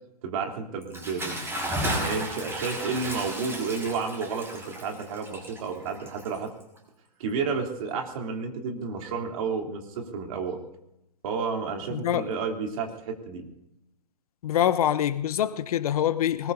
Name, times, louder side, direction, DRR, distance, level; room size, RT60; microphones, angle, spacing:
voice 1, 0.2-1.4 1.9-6.5 7.2-10.6 11.2-13.4, right 5 dB, 55° right, 3.3 m, -31 dB
Bathtub (filling or washing) / Splash splatter, 0.8-6.8, right 1 dB, 10° right, 5.7 m, -34 dB
voice 2, 11.9-12.3 14.4-16.5, left 10 dB, 60° left, 1.0 m, -25 dB
25.0 x 20.0 x 2.7 m
hypercardioid pair, 115°, 21 cm